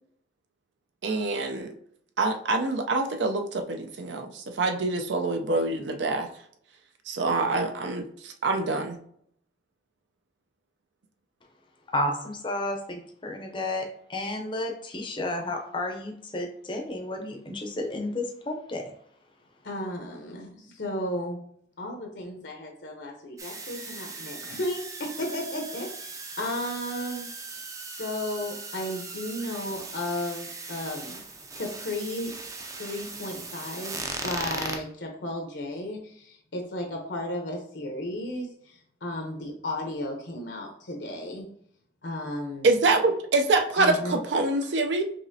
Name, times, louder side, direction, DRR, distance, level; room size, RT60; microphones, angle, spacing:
voice 1, 1.0-1.7 2.2-6.3 7.1-9.0 42.6-45.0, right 3 dB, 70° right, 6 dB, 0.5 m, -25 dB
voice 2, 11.9-18.8, left 1 dB, 25° left, 2 dB, 0.6 m, -32 dB
voice 3, 19.6-21.4 21.8-27.3 28.0-31.2 31.6-32.3 32.8-41.5 42.0-42.7 43.8-44.2, left 1 dB, 75° left, 1 dB, 0.8 m, -34 dB
sound 1, 23.4-34.8, right 3 dB, 20° right, 0.4 m, -38 dB
5.3 x 3.0 x 2.7 m, 0.66 s
head